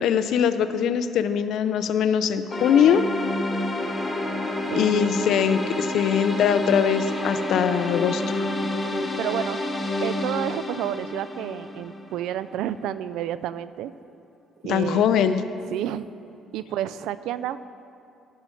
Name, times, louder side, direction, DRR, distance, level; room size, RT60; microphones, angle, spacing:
voice 1, 0.0-3.0 4.8-8.5 14.7-15.4, left 8 dB, 65° left, 11 dB, 0.5 m, -22 dB
sound 1, 2.5-12.5, left 2 dB, 15° left, 1.0 m, -29 dB
voice 2, 8.8-9.6 10.0-13.9 14.6-15.1 15.7-16.1 16.5-17.6, right 12 dB, 80° right, 15 dB, 0.3 m, -30 dB
16.0 x 5.6 x 4.5 m, 2.6 s
cardioid pair, 130°, 0 cm